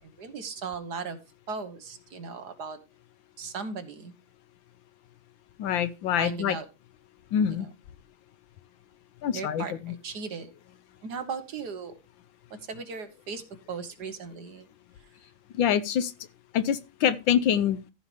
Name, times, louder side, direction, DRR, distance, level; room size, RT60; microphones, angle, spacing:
voice 1, 0.0-1.2 1.5-2.8 3.4-4.1 6.2-6.6 7.4-7.7 9.3-10.5 11.0-11.9 12.5-13.4 13.7-14.7, right 5 dB, 55° right, 1.6 m, -37 dB
voice 2, 5.6-6.6 7.3-7.7 9.2-9.9 15.6-16.1 16.5-17.8, left 9 dB, 70° left, 1.3 m, -25 dB
14.0 x 4.9 x 5.0 m
omnidirectional pair, 2.3 m